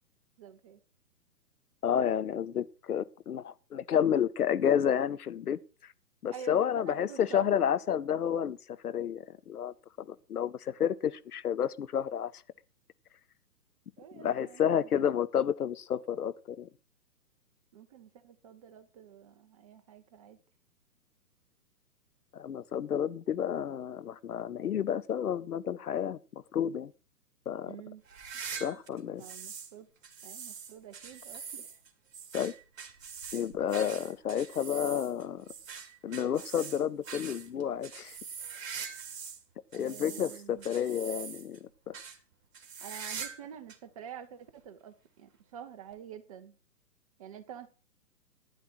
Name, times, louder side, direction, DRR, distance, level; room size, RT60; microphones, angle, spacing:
voice 1, 0.4-0.8 6.3-7.5 14.0-15.1 17.7-20.4 27.7-28.0 28.7-28.8 29.2-29.9 30.2-31.8 39.7-40.7 42.8-46.5 47.2-47.7, right 8 dB, 20° right, 0.7 m, -48 dB
voice 2, 1.8-5.6 6.2-8.6 8.8-12.3 14.1-16.7 22.3-26.2 26.5-26.9 27.5-27.8 28.6-29.2 32.3-32.5 33.3-35.4 36.0-38.2 39.7-41.9, left 9 dB, 65° left, 0.8 m, -30 dB
sound 1, 28.1-29.7 30.0-39.4 39.7-41.6 41.9-42.2 42.5-43.4 43.7-43.8 44.6-44.7 45.9-46.0, right 6 dB, 55° right, 2.1 m, -43 dB
12.0 x 10.0 x 4.4 m
figure-of-eight pair, 130°, 48 cm